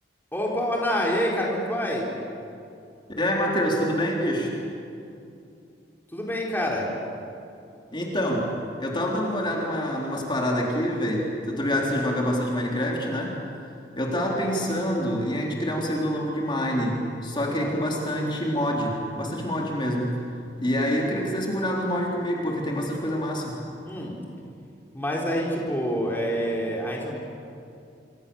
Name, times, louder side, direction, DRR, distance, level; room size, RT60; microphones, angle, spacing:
voice 1, 0.3-2.1 6.1-6.9 17.6-17.7 23.8-24.2 24.9-27.1, equal, 10° left, -2 dB, 3.8 m, -27 dB
voice 2, 3.2-4.5 7.9-8.5 8.8-13.4 14.0-20.1 20.6-23.5, equal, 25° left, -1 dB, 3.7 m, -26 dB
27.0 x 26.0 x 7.1 m, 2.6 s
head